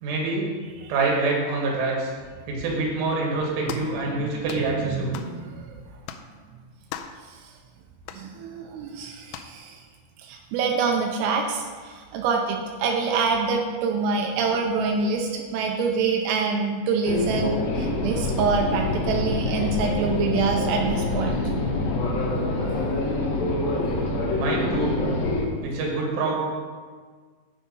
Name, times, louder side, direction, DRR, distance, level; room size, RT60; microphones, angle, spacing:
voice 1, 0.0-0.5 0.9-2.1 2.5-5.2 24.3-25.0 25.6-26.4, right 3 dB, 65° right, -2 dB, 3.9 m, -26 dB
sound 1, 3.7-4.0 4.5-4.7 5.1-5.4 6.1-6.3 6.9-7.2 8.1-8.3 9.3-9.6, left 9 dB, 85° left, 2.8 m, -37 dB
voice 2, 4.0-4.4 4.8-5.8 7.3-7.4 8.1-9.8 10.2-21.4 22.6-22.7, right 5 dB, 90° right, 1 dB, 3.4 m, -26 dB
sound 2, 17.0-25.5, left 2 dB, 65° left, 2.4 m, -26 dB
8.5 x 7.3 x 5.4 m, 1.5 s
omnidirectional pair, 5.8 m